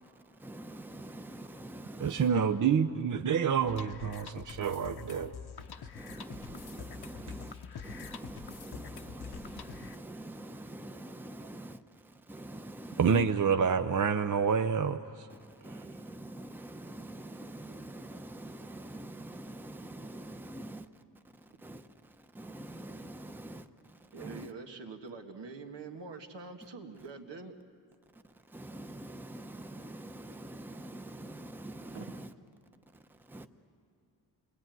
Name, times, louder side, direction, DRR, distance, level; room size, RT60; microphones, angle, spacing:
voice 1, 0.4-2.3 4.5-4.6 5.9-11.8 12.3-13.2 15.3-15.4 15.6-20.9 21.6-21.9 22.3-23.7 24.1-24.5 28.5-32.3 33.3-33.5, right 1 dB, 5° right, 0.8 m, -45 dB
voice 2, 2.0-5.3 13.0-15.3 15.7-15.8, right 6 dB, 45° right, 0.7 m, -28 dB
sound 1, 3.7-10.0, left 7 dB, 65° left, 0.9 m, -46 dB
voice 3, 24.1-27.6 31.9-32.1, right 4 dB, 80° right, 1.9 m, -45 dB
28.5 x 21.5 x 9.3 m
wide cardioid pair, 150°, 42 cm